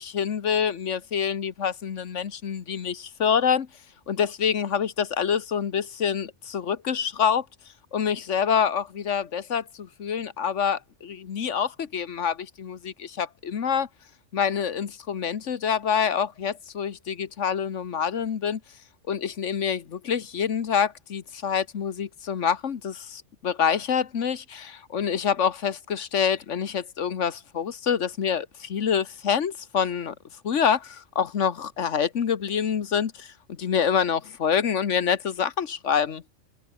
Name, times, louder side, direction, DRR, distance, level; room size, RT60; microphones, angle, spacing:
voice 1, 0.0-3.7 4.1-7.4 7.9-13.9 14.3-18.6 19.1-30.1 30.4-33.3 33.6-36.2, left 7 dB, 75° left, 1.5 m, -26 dB
omnidirectional pair, 1.2 m